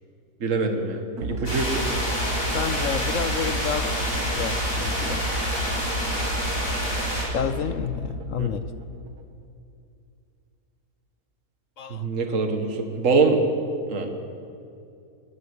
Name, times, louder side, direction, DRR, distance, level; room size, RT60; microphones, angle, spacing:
voice 1, 0.4-1.8 8.4-8.5 11.9-13.4 13.9-14.1, right 4 dB, 55° right, 4 dB, 2.1 m, -24 dB
sound 1, 1.2-9.4, right 1 dB, 75° right, 2.1 m, -31 dB
sound 2, 1.5-7.2, equal, 35° left, 5.3 m, -28 dB
voice 2, 2.5-4.0 4.3-5.2 7.3-8.6 11.8-12.1, left 8 dB, 65° left, 12 dB, 0.9 m, -29 dB
20.0 x 14.0 x 9.9 m, 2.5 s
omnidirectional pair, 1.6 m